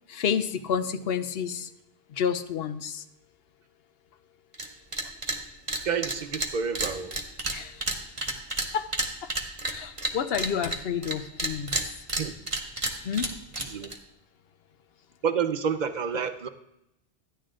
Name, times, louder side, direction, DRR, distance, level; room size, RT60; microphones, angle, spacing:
voice 1, 0.1-1.7 2.1-3.0 7.5-7.8 8.7-8.9 9.2-9.3 9.7-11.7 13.0-13.3, left 7 dB, 70° left, 11 dB, 0.9 m, -29 dB
sound 1, 4.5-4.7 4.9-5.4 5.7-11.1 11.4-14.0, right 2 dB, 30° right, 1.2 m, -30 dB
voice 2, 5.8-7.1 12.2-12.4 13.6-13.9 15.2-16.5, right 6 dB, 45° right, 10 dB, 0.8 m, -29 dB
13.5 x 10.0 x 3.8 m, 0.82 s
omnidirectional pair, 1.1 m